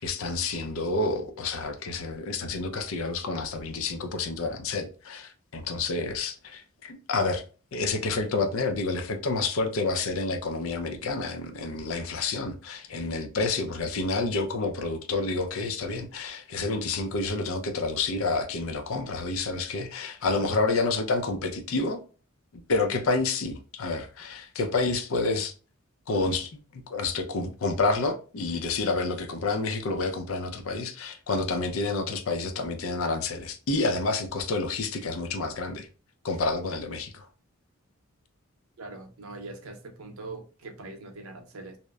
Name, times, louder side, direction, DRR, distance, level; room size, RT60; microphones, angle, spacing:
voice 1, 0.0-7.4 7.7-22.0 22.5-25.5 26.1-35.9 36.2-37.3, left 3 dB, 75° left, 0.5 m, -29 dB
voice 2, 38.8-41.8, right 3 dB, 85° right, 0.6 m, -42 dB
2.8 x 2.0 x 2.2 m
head